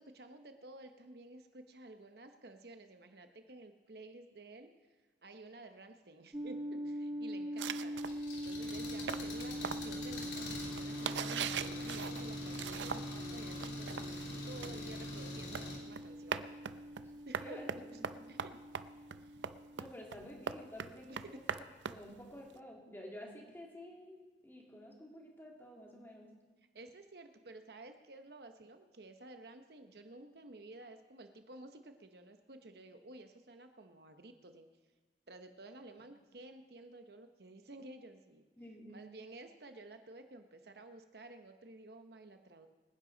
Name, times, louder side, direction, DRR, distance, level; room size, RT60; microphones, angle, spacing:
voice 1, 0.0-4.7 5.2-14.2 14.5-16.4 17.3-17.6 18.3-18.6 19.2-19.4 21.1-21.4 26.7-34.7 35.3-38.4 38.9-42.7, right 2 dB, 60° right, 7 dB, 0.9 m, -53 dB
sound 1, 6.3-19.8, equal, 15° right, 0.5 m, -43 dB
sound 2, 7.6-13.2 13.5-22.6, right 7 dB, 85° right, 0.5 m, -42 dB
Engine, 8.0-15.8, left 1 dB, 85° left, 3.3 m, -45 dB
voice 2, 17.4-18.2 19.8-26.3 38.6-39.0, left 1 dB, 15° left, -1 dB, 2.4 m, -51 dB
24.5 x 10.0 x 3.9 m, 1.3 s
head